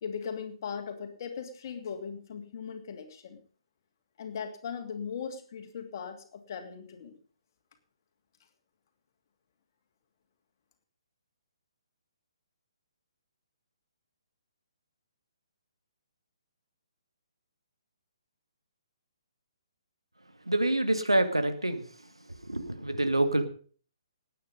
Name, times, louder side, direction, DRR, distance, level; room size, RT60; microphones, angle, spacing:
voice 1, 0.0-3.4 4.2-7.2, left 6 dB, 45° left, 6 dB, 2.8 m, -39 dB
voice 2, 20.5-21.8 22.5-23.5, right 1 dB, 85° right, 8 dB, 2.2 m, -26 dB
19.0 x 9.3 x 5.3 m, 0.42 s
figure-of-eight pair, 135°, 3 cm